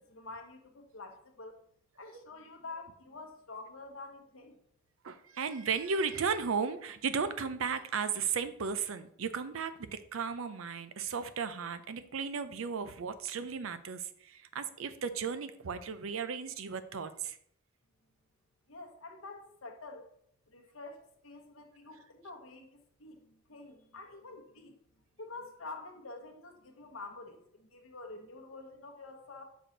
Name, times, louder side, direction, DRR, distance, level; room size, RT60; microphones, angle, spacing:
voice 1, 0.0-1.6 2.0-4.6 18.7-20.1 20.5-23.2 23.5-24.7 25.2-29.4, left 3 dB, 85° left, 3 dB, 1.0 m, -47 dB
voice 2, 5.0-17.4, right 6 dB, 80° right, 12 dB, 0.5 m, -35 dB
6.1 x 4.7 x 3.9 m, 0.68 s
head